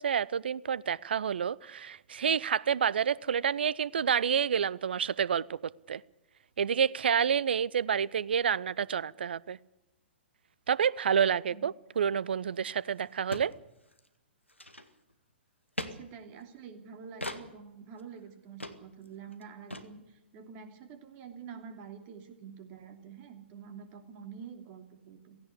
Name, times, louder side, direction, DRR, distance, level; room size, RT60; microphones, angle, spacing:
voice 1, 0.0-5.6 5.9-6.0 6.6-9.6 10.7-13.5, right 7 dB, 60° right, 23 dB, 0.6 m, -29 dB
sound 1, 12.6-12.7 12.9-13.0 13.3-13.5 13.9-14.1 14.5-15.1 15.8-15.9 17.2-17.4 18.0-18.1 18.6-18.8 19.1-19.2 19.3-19.4 19.7-19.9, left 1 dB, 90° left, 1.9 m, -39 dB
voice 2, 15.8-25.4, right 6 dB, 30° right, 6 dB, 2.9 m, -47 dB
17.0 x 16.0 x 9.8 m, 0.93 s
figure-of-eight pair, 120°, 6 cm